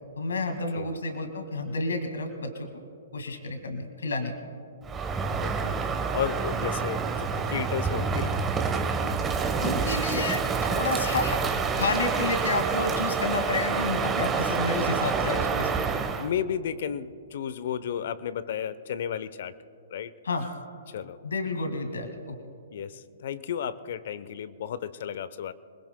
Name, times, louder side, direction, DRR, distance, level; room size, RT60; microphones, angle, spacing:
voice 1, 0.2-2.7 3.1-4.3 9.6-10.4 10.7-11.4 11.8-15.8 20.2-20.5 21.2-22.4, left 3 dB, 80° left, 6 dB, 1.9 m, -30 dB
Crow, 4.8-16.3, right 5 dB, 15° right, 1.1 m, -28 dB
voice 2, 5.4-5.8 6.1-8.4 10.1-10.3 15.0-15.6 16.2-19.6 19.9-20.1 20.9-21.2 22.7-25.5, left 9 dB, 60° left, 16 dB, 0.7 m, -33 dB
27.0 x 21.0 x 2.2 m, 2.6 s
hypercardioid pair, 130°, 0 cm